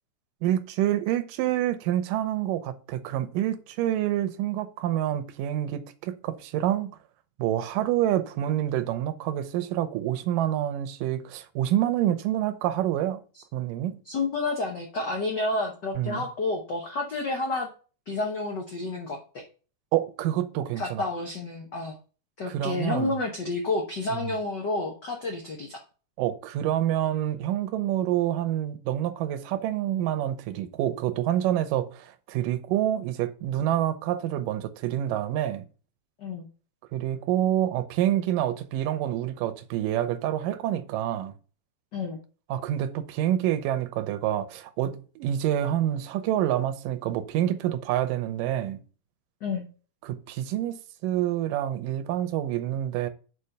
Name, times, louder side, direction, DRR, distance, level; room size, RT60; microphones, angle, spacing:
voice 1, 0.4-7.0 7.4-13.2 13.5-14.0 15.9-16.2 19.9-21.0 22.5-23.2 24.1-24.3 26.2-35.7 36.9-41.3 42.5-48.8 50.0-53.1, right 12 dB, 90° right, 2.4 m, -27 dB
voice 2, 14.0-17.7 18.1-19.4 20.8-21.9 22.4-25.8 36.2-36.5 41.9-42.2 49.4-49.6, left 3 dB, 85° left, 0.9 m, -30 dB
5.7 x 5.1 x 6.5 m
omnidirectional pair, 3.7 m